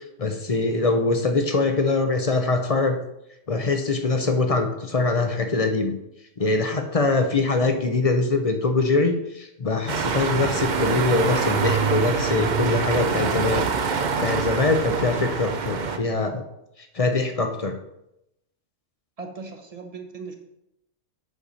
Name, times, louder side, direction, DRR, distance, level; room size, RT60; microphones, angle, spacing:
voice 1, 0.2-3.0 3.5-5.9 6.4-13.7 14.2-16.4 16.9-17.7, left 3 dB, 35° left, 6 dB, 0.7 m, -23 dB
sound 1, 9.9-16.0, right 5 dB, 45° right, 0.7 m, -25 dB
voice 2, 19.2-20.3, right 4 dB, 30° right, 4 dB, 1.1 m, -38 dB
8.4 x 6.6 x 4.1 m, 0.84 s
omnidirectional pair, 1.2 m